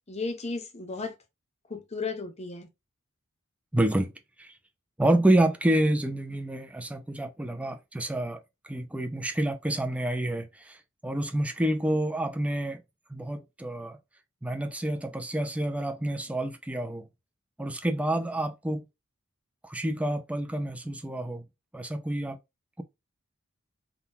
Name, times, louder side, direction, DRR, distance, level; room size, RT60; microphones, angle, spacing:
voice 1, 0.1-1.1 1.7-2.7, left 4 dB, 30° left, 0.8 m, -34 dB
voice 2, 3.7-4.1 4.4-4.5 5.0-12.8 13.1-14.0 14.4-17.0 17.6-18.8 19.6-21.4 21.7-22.4, right 1 dB, 5° right, 0.4 m, -28 dB
3.7 x 2.3 x 2.7 m
head